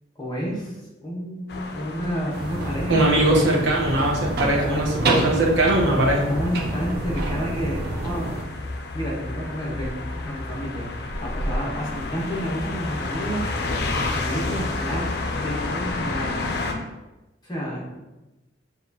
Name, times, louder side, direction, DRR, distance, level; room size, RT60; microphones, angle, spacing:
voice 1, 0.1-3.4 4.5-5.1 6.3-8.3 8.9-10.9 11.2-16.4 17.4-18.0, equal, 20° left, -5 dB, 1.0 m, -30 dB
sound 1, 1.5-16.7, left 2 dB, 60° left, 0.5 m, -31 dB
sound 2, 2.3-8.4, right 2 dB, 55° right, 0.6 m, -28 dB
voice 2, 2.9-6.3, right 1 dB, 75° right, -2 dB, 0.9 m, -20 dB
6.7 x 2.4 x 2.7 m, 1.0 s
head